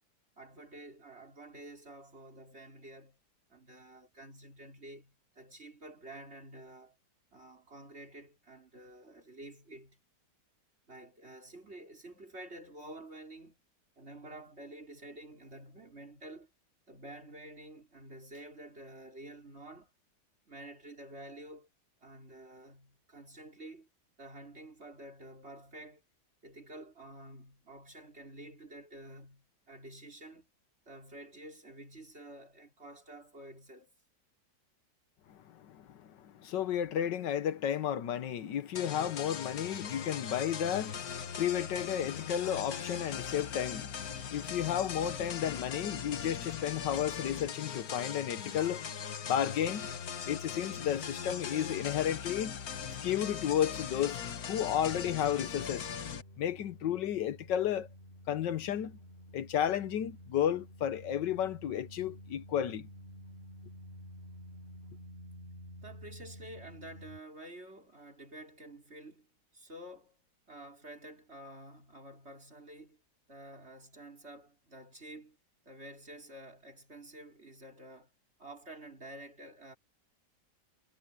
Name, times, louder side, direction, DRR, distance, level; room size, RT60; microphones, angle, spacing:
voice 1, 0.4-3.2 3.5-7.0 7.3-10.0 10.9-13.6 14.0-16.5 16.9-19.9 20.4-21.7 22.0-23.9 24.2-26.0 26.4-30.5 30.9-33.9 65.8-70.2 70.5-73.0 73.3-75.4 75.6-78.1 78.4-79.8, right 1 dB, 35° right, 4.9 m, -50 dB
voice 2, 35.3-43.9 44.3-48.8 49.2-49.9 50.2-52.6 53.0-54.2 54.5-55.9 56.4-57.9 58.3-59.0 59.3-62.9, left 10 dB, 80° left, 1.6 m, -33 dB
sound 1, 38.7-56.2, left 7 dB, 60° left, 1.6 m, -40 dB
sound 2, 54.5-67.2, equal, 30° left, 8.1 m, -51 dB
omnidirectional pair, 1.9 m